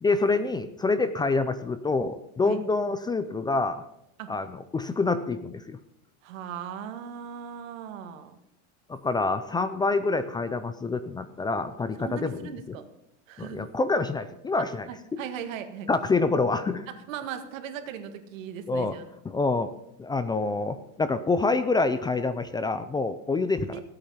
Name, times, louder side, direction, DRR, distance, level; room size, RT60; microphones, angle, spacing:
voice 1, 0.0-3.8 4.3-5.8 8.9-12.4 12.7-12.8 13.4-14.9 15.9-16.9 18.7-19.0 19.2-19.7 20.0-23.7, left 3 dB, 10° left, 12 dB, 0.4 m, -26 dB
voice 2, 6.2-8.4 12.0-12.9 13.3-13.7 14.9-15.9 16.9-19.0 23.7-23.8, right 8 dB, 85° right, 7 dB, 1.9 m, -38 dB
16.0 x 8.7 x 5.6 m, 0.80 s
supercardioid pair, 140°, 38 cm